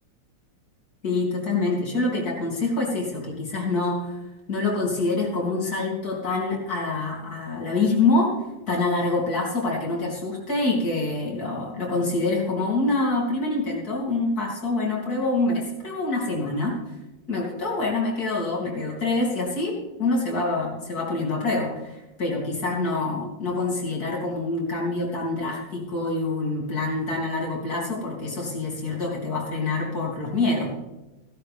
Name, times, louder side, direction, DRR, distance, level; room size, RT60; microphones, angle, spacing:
voice 1, 1.0-4.1 4.5-8.3 8.7-16.8 17.3-30.7, left 3 dB, 50° left, -3 dB, 3.6 m, -26 dB
15.0 x 12.5 x 3.5 m, 1.0 s
omnidirectional pair, 2.0 m